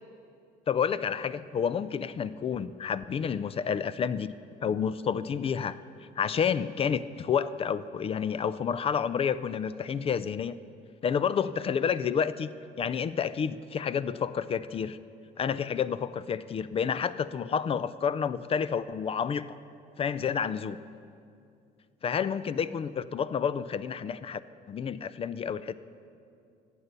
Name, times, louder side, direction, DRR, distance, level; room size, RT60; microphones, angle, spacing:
voice 1, 0.7-4.3 4.6-5.8 6.2-10.5 11.0-15.0 15.4-19.6 20.0-20.8 22.0-24.4 24.7-25.8, left 7 dB, 35° left, 16 dB, 0.4 m, -29 dB
13.5 x 8.3 x 6.7 m, 2.5 s
cardioid pair, 110°, 17 cm